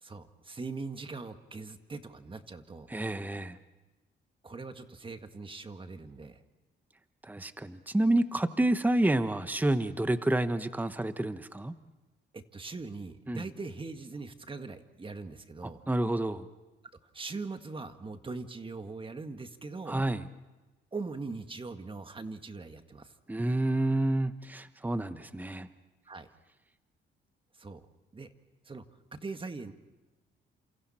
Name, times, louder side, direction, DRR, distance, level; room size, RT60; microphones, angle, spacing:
voice 1, 0.0-2.9 4.4-6.4 12.3-15.8 17.1-20.0 20.9-23.1 26.0-26.3 27.6-27.8 28.1-28.3 28.6-28.8 29.1-29.7, right 3 dB, 25° right, 7 dB, 1.8 m, -41 dB
voice 2, 2.9-3.6 7.2-11.7 13.3-13.4 15.9-16.5 19.9-20.2 23.3-25.7, right 1 dB, 10° right, 10 dB, 1.1 m, -29 dB
30.0 x 27.5 x 4.4 m, 1.1 s
cardioid pair, 90°, 20 cm